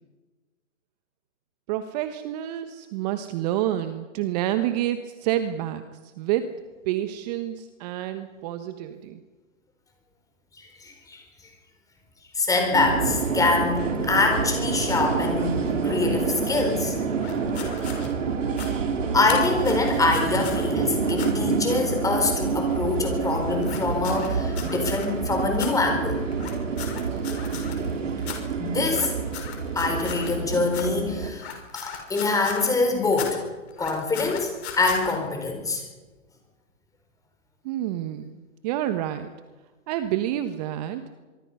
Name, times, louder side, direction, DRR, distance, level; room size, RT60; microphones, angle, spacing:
voice 1, 1.7-9.2 37.6-39.3 39.9-41.0, right 12 dB, 30° right, 10 dB, 1.2 m, -28 dB
voice 2, 10.6-11.2 12.4-15.6 15.8-16.9 19.1-26.2 28.6-29.1 29.7-33.4 33.8-35.8, left 3 dB, 10° left, 3 dB, 4.3 m, -25 dB
sound 1, 12.7-31.3, right 5 dB, 70° right, 4.4 m, -27 dB
sound 2, 17.2-18.1 18.5-18.7 19.2-20.7 21.1-21.3 23.6-25.0 25.5-25.7 26.3-27.9 28.2-28.4 28.9-30.4 30.7-30.8 31.3-32.7 33.1-33.3 33.7-35.1, left 8 dB, 55° left, 6.1 m, -37 dB
24.5 x 23.5 x 5.6 m, 1.3 s
hypercardioid pair, 130°, 39 cm